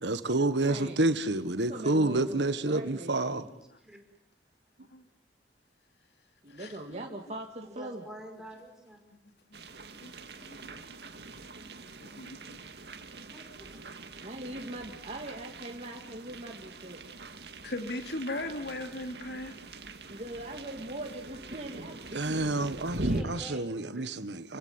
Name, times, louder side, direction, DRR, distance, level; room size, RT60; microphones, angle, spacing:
voice 1, 0.0-3.4 22.1-24.6, right 2 dB, 85° right, 1.6 m, -29 dB
voice 2, 0.6-1.0 1.7-3.5 6.4-8.0 14.2-17.0 20.1-22.9, right 1 dB, 40° right, 2.4 m, -41 dB
voice 3, 3.4-4.0 7.7-9.0 13.3-13.8 22.9-24.1, equal, 5° right, 5.2 m, -48 dB
voice 4, 6.5-7.0 9.2-9.6 10.0-10.1 10.4-10.8 12.0-12.6 17.6-19.5, left 2 dB, 70° left, 3.0 m, -38 dB
sound 1, 9.5-23.2, right 2 dB, 65° right, 2.2 m, -41 dB
29.5 x 16.5 x 9.7 m
head